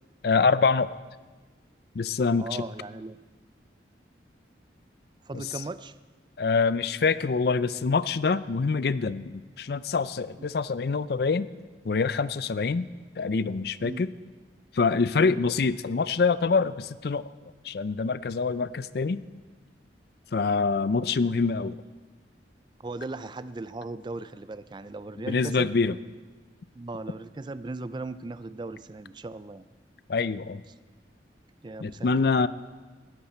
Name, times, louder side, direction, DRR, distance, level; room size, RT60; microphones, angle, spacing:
voice 1, 0.2-1.0 1.9-2.5 5.3-5.4 6.4-11.5 11.8-12.9 13.2-14.1 14.7-17.2 17.6-19.2 20.3-21.8 25.3-26.0 30.1-30.6 31.8-32.5, left 4 dB, 60° left, 16 dB, 0.4 m, -25 dB
voice 2, 2.4-3.2 5.3-5.9 13.8-14.1 15.2-15.4 22.8-25.7 26.7-29.7 31.6-32.5, right 2 dB, 25° right, 14 dB, 0.4 m, -38 dB
18.5 x 13.5 x 4.3 m, 1.3 s
head